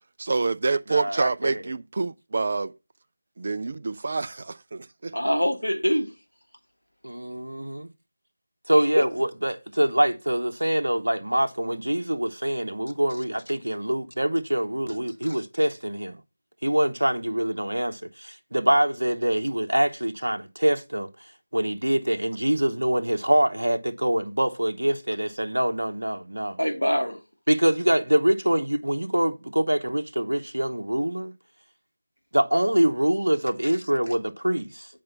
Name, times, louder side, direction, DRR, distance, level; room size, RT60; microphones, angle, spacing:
voice 1, 0.2-2.7 3.4-5.2, right 3 dB, 35° right, 0.5 m, -27 dB
voice 2, 0.9-1.7 7.0-7.9 8.7-16.2 16.6-21.1 21.5-26.6 27.5-31.3 32.3-34.9, right 1 dB, 70° right, 1.0 m, -24 dB
voice 3, 5.1-6.1 8.7-9.1 15.2-15.4 26.6-27.2, equal, 85° left, 1.5 m, -24 dB
7.7 x 5.1 x 5.5 m
figure-of-eight pair, 165°, 0 cm